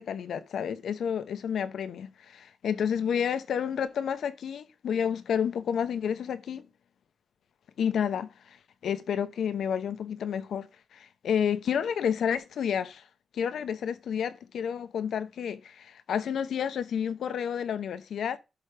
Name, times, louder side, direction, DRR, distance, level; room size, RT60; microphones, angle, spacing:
voice 1, 0.0-6.7 7.8-8.3 8.8-10.7 10.9-13.0 13.3-18.4, left 8 dB, 80° left, 0.8 m, -30 dB
11.0 x 4.9 x 3.4 m
cardioid pair, 105°, 0 cm